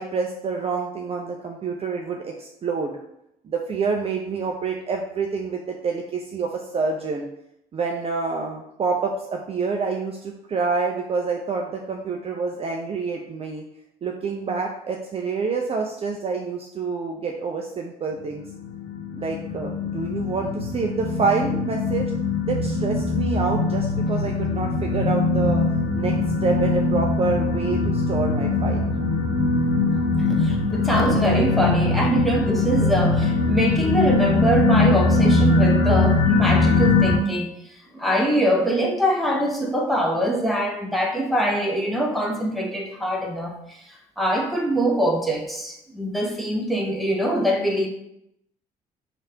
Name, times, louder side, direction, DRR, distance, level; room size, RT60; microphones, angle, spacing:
voice 1, 0.0-3.0 3.4-7.3 7.7-13.7 14.0-18.4 19.1-22.1 22.4-25.6 26.0-26.1 26.4-28.8, right 4 dB, 30° right, 1 dB, 0.5 m, -27 dB
sound 1, 18.4-37.2, left 3 dB, 60° left, 0.6 m, -21 dB
voice 2, 30.2-37.5 37.9-43.8 44.2-47.9, equal, ahead, 0 dB, 0.9 m, -23 dB
3.1 x 2.5 x 4.4 m, 0.78 s
figure-of-eight pair, 50°, 20 cm